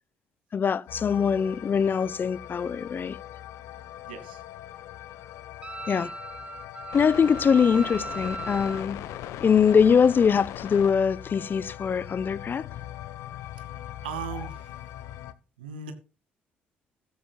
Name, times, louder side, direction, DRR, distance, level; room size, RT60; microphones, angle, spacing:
voice 1, 0.5-3.2 5.9-6.1 6.9-9.0 9.4-12.8, left 6 dB, 40° left, 0.7 m, -23 dB
sound 1, 0.9-15.3, left 12 dB, 70° left, 1.0 m, -40 dB
voice 2, 4.1-4.4 13.4-14.9 15.6-15.9, right 7 dB, 90° right, 2.0 m, -39 dB
Wind instrument woodwind instrument, 5.6-8.8, right 3 dB, 25° right, 1.9 m, -38 dB
15.5 x 14.0 x 2.3 m
hypercardioid pair, 55°, 5 cm